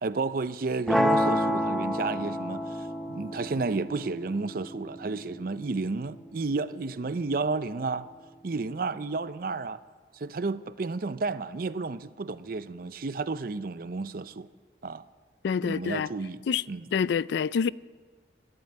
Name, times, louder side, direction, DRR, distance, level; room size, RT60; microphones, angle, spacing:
voice 1, 0.0-8.1 8.4-9.8 10.1-14.5 14.8-15.0 15.6-16.9, right 3 dB, 50° right, 0.5 m, -32 dB
sound 1, 0.9-6.9, equal, ahead, 0.8 m, -30 dB
voice 2, 15.4-16.1 16.5-16.6 16.9-17.7, left 6 dB, 75° left, 0.3 m, -26 dB
13.0 x 11.5 x 8.6 m
head